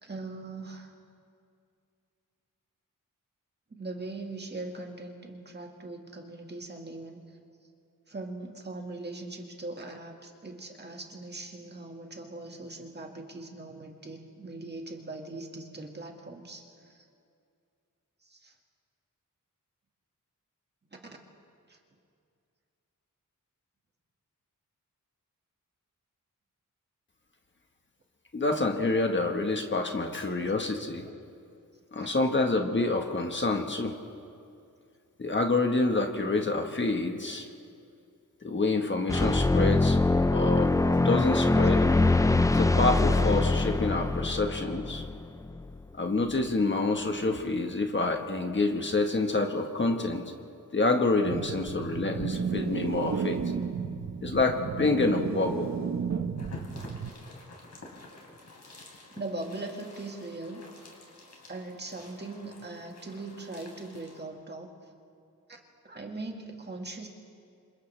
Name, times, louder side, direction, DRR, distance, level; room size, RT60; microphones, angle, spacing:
voice 1, 0.0-0.9 3.7-7.3 8.1-17.1 18.2-18.5 20.9-21.2 21.7-21.8 30.1-30.6 41.6-41.7 59.1-60.6 61.3-64.7 65.5-67.1, right 2 dB, 30° right, 2 dB, 1.9 m, -41 dB
voice 2, 28.3-31.1 31.9-34.0 35.2-37.5 38.4-40.0 40.3-40.7 41.0-41.8 42.5-45.0 46.0-50.2 50.7-53.4 54.2-55.7, left 3 dB, 35° left, 3 dB, 1.4 m, -27 dB
sound 1, 39.1-45.8, left 2 dB, 10° left, 0.4 m, -24 dB
sound 2, 51.2-57.1, right 6 dB, 55° right, 0.9 m, -33 dB
sound 3, 56.4-64.2, left 2 dB, 55° left, 3.8 m, -49 dB
30.0 x 26.5 x 3.4 m, 2.4 s
wide cardioid pair, 150°, 33 cm